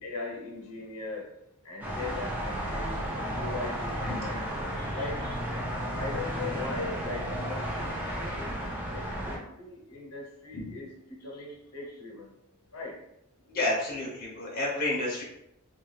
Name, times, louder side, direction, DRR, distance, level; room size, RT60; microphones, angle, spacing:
voice 1, 0.0-1.3 1.6-2.9 3.2-4.4 4.9-5.2 5.9-8.6 8.9-12.3 12.7-13.0, left 3 dB, 80° left, -1 dB, 0.8 m, -39 dB
sound 1, 1.8-9.4, equal, 10° right, 0.4 m, -33 dB
voice 2, 13.5-15.2, left 2 dB, 40° left, -4 dB, 0.6 m, -31 dB
2.3 x 2.3 x 3.2 m, 0.79 s
head